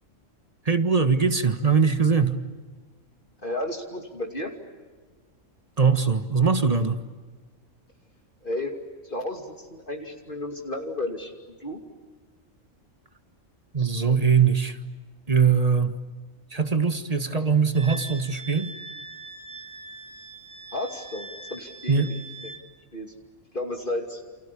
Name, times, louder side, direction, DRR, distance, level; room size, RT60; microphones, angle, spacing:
voice 1, 0.6-2.4 5.8-7.0 13.7-14.8 15.3-16.0 16.5-18.7 21.9-22.1, right 5 dB, 30° right, 9 dB, 1.6 m, -21 dB
voice 2, 3.4-4.5 8.4-8.8 9.0-11.3 11.6-11.8 20.7-22.1 22.9-23.1 23.5-24.2, left 1 dB, 40° left, 2 dB, 2.9 m, -32 dB
Wind instrument woodwind instrument, 17.7-22.6, right 3 dB, 5° right, 2.6 m, -41 dB
29.5 x 29.0 x 7.0 m, 1.4 s
omnidirectional pair, 1.3 m